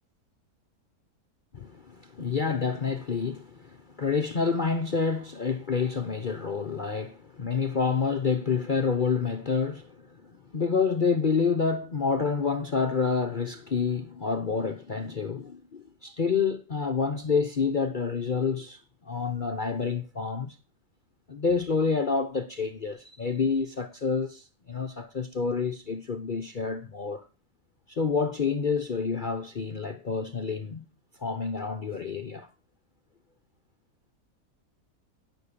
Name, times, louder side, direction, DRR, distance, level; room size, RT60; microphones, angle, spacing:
voice 1, 1.5-20.6 21.3-27.3 27.9-30.8 31.2-32.5, left 5 dB, 40° left, 0.8 m, -28 dB
18.5 x 6.5 x 6.9 m
omnidirectional pair, 1.6 m